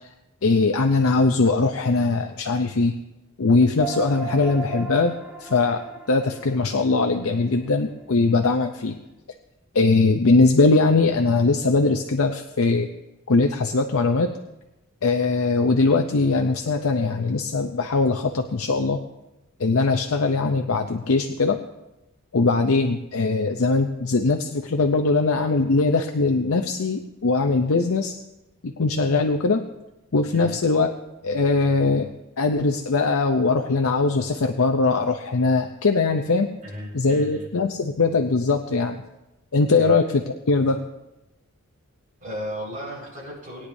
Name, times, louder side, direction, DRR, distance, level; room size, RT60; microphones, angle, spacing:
voice 1, 0.4-2.9 3.4-8.9 9.7-12.9 13.3-14.3 15.0-19.0 19.6-21.6 22.3-28.2 28.6-29.6 30.1-30.9 31.2-32.1 32.4-36.5 36.9-39.0 39.5-40.2 40.5-40.8, left 3 dB, 70° left, 5 dB, 0.6 m, -21 dB
sound 1, 3.8-8.6, right 6 dB, 10° right, 1.7 m, -37 dB
voice 2, 36.6-37.5 39.8-40.0 42.2-43.7, equal, 40° right, -4 dB, 5.1 m, -35 dB
20.5 x 9.9 x 2.7 m, 0.98 s
head